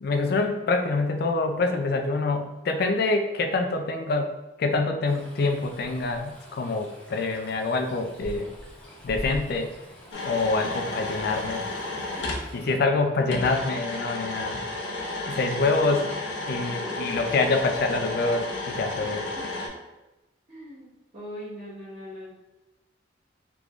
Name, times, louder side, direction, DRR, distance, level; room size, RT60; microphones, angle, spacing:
voice 1, 0.0-4.3 4.6-8.5 9.0-9.7 10.2-11.6 12.5-14.6 15.3-16.1 16.5-19.2, left 3 dB, 55° left, 5 dB, 0.4 m, -26 dB
Stream, 5.1-12.8, equal, 5° left, 0.8 m, -44 dB
sound 1, 10.1-12.5 13.3-19.7, left 2 dB, 85° left, 0.8 m, -32 dB
voice 2, 16.8-17.3 18.9-19.5 20.5-22.3, equal, 40° right, -12 dB, 1.1 m, -41 dB
3.5 x 3.0 x 2.4 m, 1.1 s
head